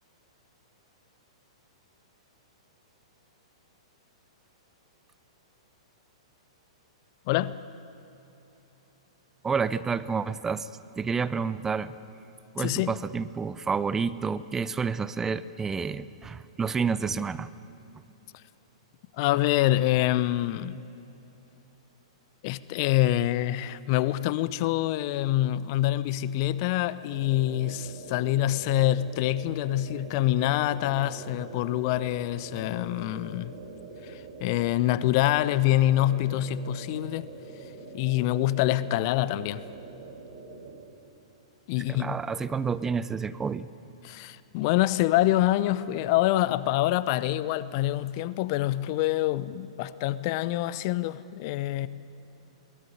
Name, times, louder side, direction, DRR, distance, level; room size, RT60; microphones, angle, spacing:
voice 1, 7.3-7.6 12.6-13.0 19.2-20.8 22.4-33.5 34.0-37.3 37.9-39.7 41.7-42.2 44.0-51.9, left 14 dB, 40° left, 0.7 m, -26 dB
voice 2, 9.4-10.7 11.0-11.9 12.5-17.5 41.8-43.7, right 5 dB, 15° right, 0.6 m, -29 dB
sound 1, 27.1-40.7, right 4 dB, 50° right, 5.0 m, -44 dB
22.5 x 18.0 x 9.7 m
figure-of-eight pair, 105°, 3 cm